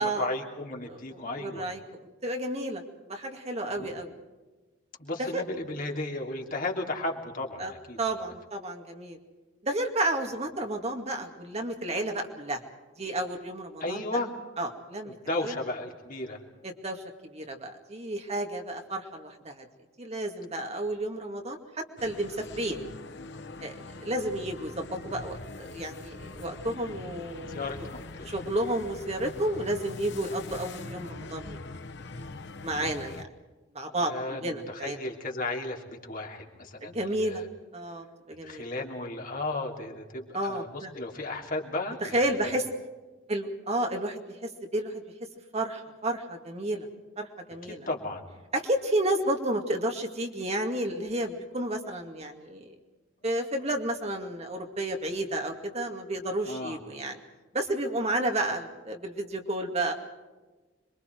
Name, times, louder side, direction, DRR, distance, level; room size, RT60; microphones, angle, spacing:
voice 1, 0.0-1.7 3.8-3.9 5.0-8.0 13.8-14.3 15.0-16.4 27.5-28.4 34.0-37.5 38.4-42.2 42.4-42.5 47.7-48.4 56.4-56.8, left 2 dB, 45° left, 1 dB, 3.1 m, -34 dB
voice 2, 0.9-4.1 5.2-5.4 7.6-7.7 8.0-9.2 9.6-12.6 13.0-14.2 14.6-15.6 16.6-19.7 20.0-22.8 23.6-23.7 24.0-27.6 28.2-31.6 32.6-33.2 33.7-35.0 36.8-37.4 37.7-38.6 40.3-40.9 42.0-42.7 43.3-45.0 45.5-46.9 47.2-47.9 48.5-52.7 53.2-57.2 57.5-59.9, right 1 dB, 35° right, 3 dB, 2.3 m, -31 dB
sound 1, 22.0-33.2, left 2 dB, 60° left, 1.1 m, -42 dB
27.0 x 23.5 x 4.7 m, 1.2 s
head